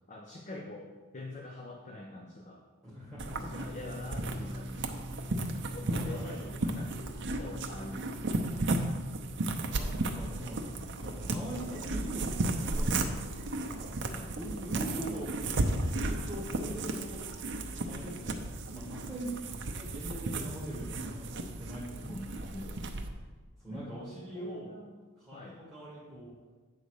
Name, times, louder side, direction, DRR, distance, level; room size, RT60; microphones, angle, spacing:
voice 1, 0.1-2.7 3.4-5.4 5.7-8.2 14.1-15.3 22.0-22.8 23.7-24.1 24.3-25.0 25.3-25.6, left 2 dB, 35° left, 1 dB, 0.7 m, -45 dB
voice 2, 2.8-3.4 5.8-6.8 9.5-13.2 13.7-13.9 14.4-17.2 17.8-22.3 23.6-24.7 25.3-26.3, right 1 dB, ahead, -9 dB, 1.7 m, -42 dB
sound 1, 3.2-23.1, right 2 dB, 55° right, 0.7 m, -34 dB
8.6 x 4.0 x 6.4 m, 1.4 s
head